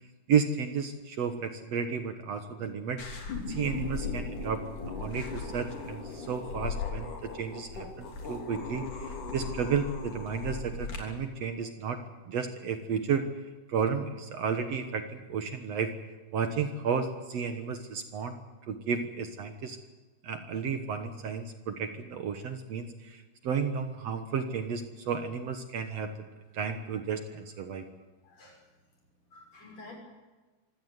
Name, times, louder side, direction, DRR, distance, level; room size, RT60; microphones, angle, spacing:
voice 1, 0.3-3.0 3.5-4.6 5.0-12.0 12.3-13.2 13.7-15.9 16.3-18.4 18.7-19.8 20.2-26.1 26.5-27.9, right 6 dB, 60° right, 7 dB, 2.2 m, -32 dB
sound 1, 3.0-11.0, left 4 dB, 80° left, 4.8 m, -37 dB
voice 2, 28.2-28.7 29.3-30.0, left 2 dB, 55° left, 1 dB, 7.0 m, -50 dB
25.0 x 16.5 x 8.1 m, 1.2 s
omnidirectional pair, 3.6 m